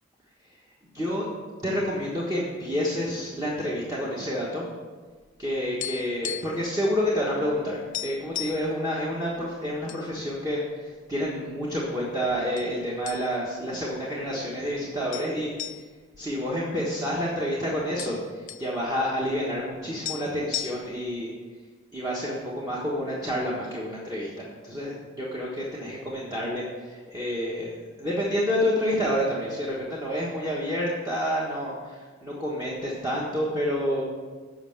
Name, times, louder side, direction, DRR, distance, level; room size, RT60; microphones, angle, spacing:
voice 1, 0.9-1.3 1.6-4.6 5.4-15.8 16.2-21.3 21.9-27.7 28.0-34.0, equal, 20° right, -6 dB, 1.4 m, -29 dB
sound 1, 5.4-6.7 6.9-7.1 7.5-7.6 7.9-8.7 9.4-10.0 10.4-10.5 11.2-11.9 12.6-12.7 13.1-13.6 13.9-14.0 15.1-17.2 17.5-17.6 17.8-18.7 19.7-19.8 20.0-21.1, left 12 dB, 40° left, 0.4 m, -36 dB
8.0 x 5.5 x 7.7 m, 1.4 s
head